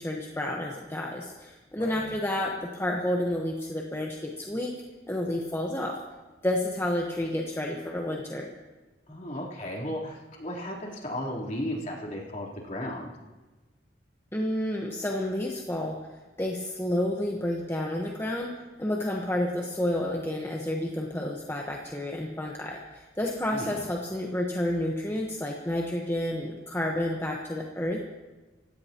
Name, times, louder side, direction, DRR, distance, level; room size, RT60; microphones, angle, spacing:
voice 1, 0.0-4.7 5.1-5.9 6.4-8.5 14.3-16.0 16.4-18.5 18.8-28.0, left 1 dB, 15° left, -1 dB, 1.3 m, -30 dB
voice 2, 1.8-2.1 9.1-13.1 23.5-23.8, left 1 dB, 45° left, -3 dB, 3.8 m, -35 dB
26.0 x 16.5 x 3.1 m, 1.2 s
head